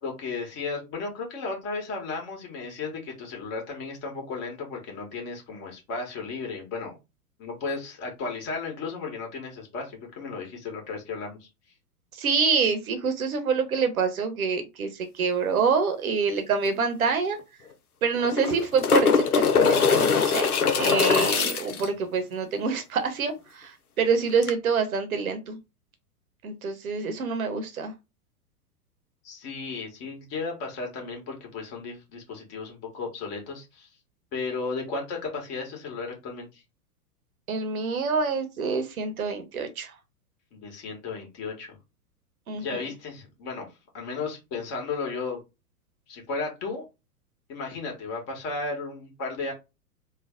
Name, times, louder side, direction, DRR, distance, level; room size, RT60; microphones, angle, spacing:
voice 1, 0.0-6.9 7.4-11.5 21.2-21.5 29.2-33.9 34.3-36.6 40.5-41.8 42.5-43.7 43.9-45.4 46.1-46.8 47.5-49.5, left 4 dB, 35° left, 1.6 m, -34 dB
voice 2, 12.2-14.9 15.2-17.4 18.0-23.7 24.0-25.6 26.4-27.9 37.5-39.9 42.5-42.8, right 5 dB, 65° right, 1.0 m, -26 dB
sound 1, 16.7-16.8 17.0-17.1 18.2-21.9 24.4-24.5, left 6 dB, 75° left, 0.8 m, -22 dB
3.2 x 2.3 x 3.6 m
figure-of-eight pair, 100°, 45 cm